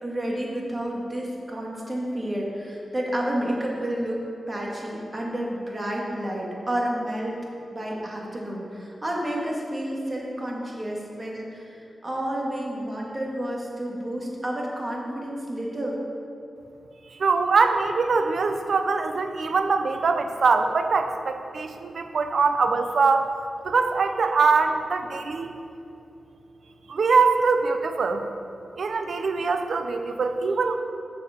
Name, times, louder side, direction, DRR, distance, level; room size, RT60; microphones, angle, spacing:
voice 1, 0.0-4.2 4.5-7.4 7.7-16.0, right 1 dB, 30° right, -2 dB, 2.2 m, -30 dB
voice 2, 17.2-23.3 23.6-25.5 26.9-28.2 28.8-30.7, right 4 dB, 75° right, 7 dB, 0.7 m, -23 dB
7.1 x 6.5 x 6.7 m, 2.7 s
cardioid pair, 60°, 0 cm